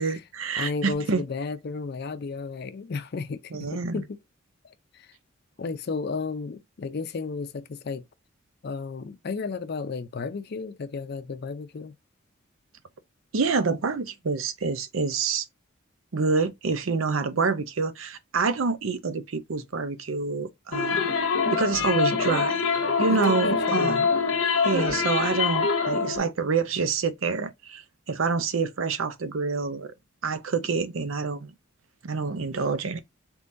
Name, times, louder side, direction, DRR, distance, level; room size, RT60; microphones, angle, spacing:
voice 1, 0.0-1.2 3.5-4.0 13.3-15.4 16.1-21.1 21.5-22.6 23.0-24.1 24.6-29.9 30.2-31.5 32.0-33.0, right 4 dB, 85° right, 0.6 m, -27 dB
voice 2, 0.6-4.2 4.6-5.1 5.6-8.0 8.6-11.9 23.1-24.0, left 4 dB, 50° left, 0.4 m, -33 dB
sound 1, 20.7-26.2, left 5 dB, 90° left, 0.8 m, -24 dB
3.7 x 2.9 x 2.6 m
head